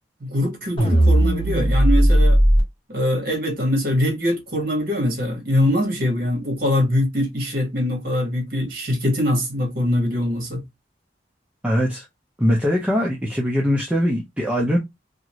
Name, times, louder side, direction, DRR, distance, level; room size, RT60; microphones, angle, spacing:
voice 1, 0.2-2.4 2.9-10.6, left 1 dB, 55° right, 1.3 m, -23 dB
sound 1, 0.8-2.6, right 1 dB, 30° left, 1.3 m, -16 dB
voice 2, 11.6-12.1 12.4-14.8, equal, 5° right, 0.5 m, -21 dB
2.8 x 2.5 x 2.9 m
head